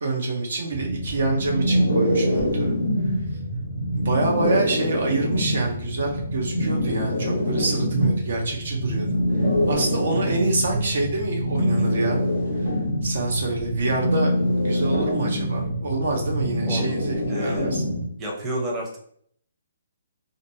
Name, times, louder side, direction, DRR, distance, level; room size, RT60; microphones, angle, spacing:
voice 1, 0.0-2.8 3.9-9.2 9.7-12.2 13.0-17.8, right 3 dB, 60° right, 0 dB, 0.6 m, -27 dB
sound 1, 0.7-18.0, equal, 80° right, 1.1 m, -25 dB
voice 2, 17.3-17.8 18.2-19.0, right 1 dB, 20° right, -2 dB, 0.8 m, -30 dB
2.5 x 2.2 x 2.7 m, 0.62 s
figure-of-eight pair, 135°, 0 cm